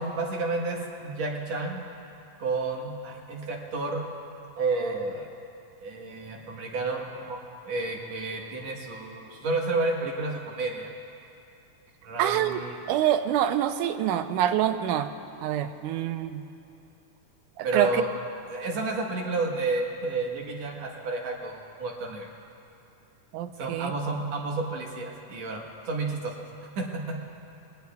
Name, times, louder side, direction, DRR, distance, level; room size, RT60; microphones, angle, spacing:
voice 1, 0.0-1.8 2.4-4.1 4.6-5.3 5.8-7.4 7.6-10.9 12.0-12.8 17.6-18.1 18.5-22.3 23.6-26.3 26.8-27.2, right 3 dB, 60° right, 0 dB, 2.4 m, -31 dB
voice 2, 12.2-12.6 12.9-15.1 15.4-16.4 17.6-18.0 23.3-23.9, right 11 dB, 85° right, 9 dB, 2.1 m, -26 dB
27.0 x 20.0 x 2.3 m, 2.7 s
omnidirectional pair, 3.6 m